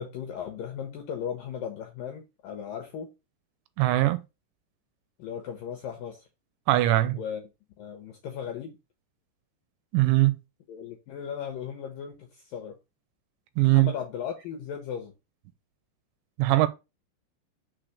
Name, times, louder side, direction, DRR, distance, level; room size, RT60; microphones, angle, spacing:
voice 1, 0.0-3.1 5.2-6.3 7.1-7.4 7.8-8.8 10.7-12.8 13.6-15.1, left 8 dB, 75° left, 2.1 m, -36 dB
voice 2, 3.8-4.2 6.7-7.2 9.9-10.4 13.6-13.9 16.4-16.7, right 16 dB, 80° right, 2.8 m, -21 dB
6.5 x 4.2 x 6.3 m
omnidirectional pair, 5.4 m